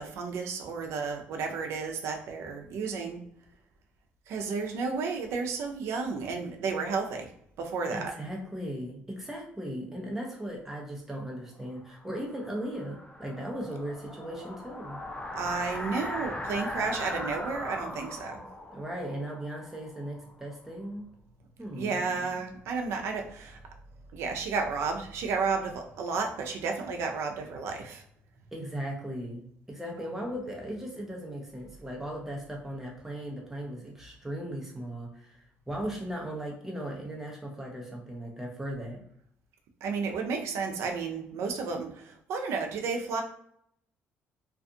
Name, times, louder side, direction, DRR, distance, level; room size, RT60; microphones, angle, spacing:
voice 1, 0.0-3.2 4.3-7.3 7.6-8.1 15.3-18.4 21.8-23.6 24.1-28.0 39.8-43.2, right 4 dB, 75° right, 4 dB, 0.5 m, -32 dB
voice 2, 7.9-15.0 18.7-21.1 21.6-22.3 28.5-29.4 29.7-39.0, right 1 dB, 5° right, -2 dB, 0.8 m, -37 dB
sound 1, 11.8-20.5, left 1 dB, 25° left, 0.6 m, -39 dB
2.5 x 2.3 x 2.6 m, 0.70 s
cardioid pair, 105°, 5 cm